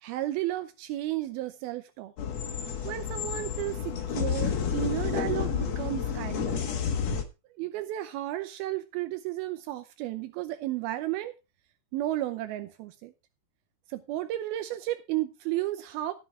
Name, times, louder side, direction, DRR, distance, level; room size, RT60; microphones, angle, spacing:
voice 1, 0.0-2.1 2.8-6.6 7.6-11.3 11.9-13.1 13.9-16.1, right 15 dB, 85° right, 9 dB, 2.6 m, -33 dB
sound 1, 2.2-7.2, left 7 dB, 55° left, 2.3 m, -30 dB
13.5 x 7.8 x 4.3 m, 0.27 s
omnidirectional pair, 4.3 m